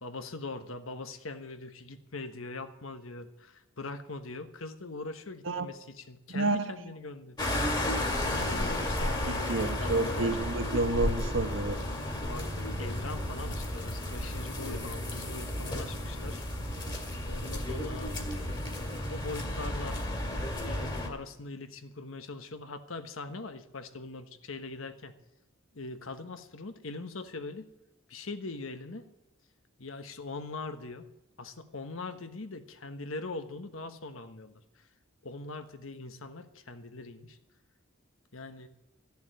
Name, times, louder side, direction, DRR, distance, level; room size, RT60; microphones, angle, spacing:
voice 1, 0.0-7.8 8.2-10.3 12.3-16.4 17.3-18.2 19.1-20.0 20.6-25.1 25.7-27.7 28.1-29.1 29.8-31.0 31.4-34.9 35.2-37.4 38.3-38.7, left 3 dB, 90° left, 8 dB, 1.3 m, -42 dB
voice 2, 6.3-6.7 9.3-11.8, right 2 dB, 70° right, 10 dB, 1.0 m, -30 dB
sound 1, 7.4-21.1, left 1 dB, 20° left, 2.0 m, -33 dB
14.0 x 7.2 x 9.4 m, 0.92 s
head